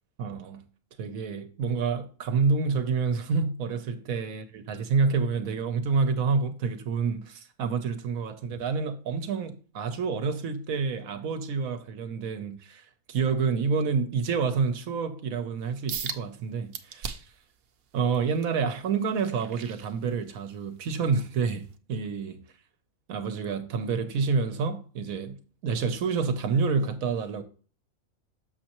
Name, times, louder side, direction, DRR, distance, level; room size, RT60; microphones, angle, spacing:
voice 1, 0.2-0.6 1.0-17.1 17.9-22.4 23.1-25.4 25.6-27.4, right 5 dB, 80° right, 1.3 m, -28 dB
sound 1, 15.9-16.2 16.7-17.4 17.9-20.5 21.0-21.2 21.7-21.8, right 7 dB, 60° right, 0.7 m, -38 dB
6.8 x 6.3 x 2.9 m
omnidirectional pair, 1.5 m